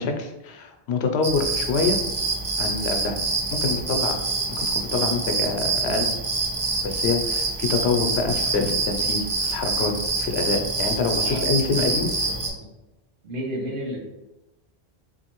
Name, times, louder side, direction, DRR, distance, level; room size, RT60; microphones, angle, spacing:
voice 1, 0.0-2.0 2.6-3.2 3.6-4.1 4.6-6.2 6.8-12.1, left 4 dB, 85° left, 4 dB, 0.8 m, -26 dB
sound 1, 1.2-12.5, right 3 dB, 40° right, 0.5 m, -26 dB
voice 2, 11.2-12.7 13.2-14.0, equal, 75° right, -2 dB, 1.1 m, -32 dB
3.6 x 2.6 x 2.9 m, 1.0 s
omnidirectional pair, 1.1 m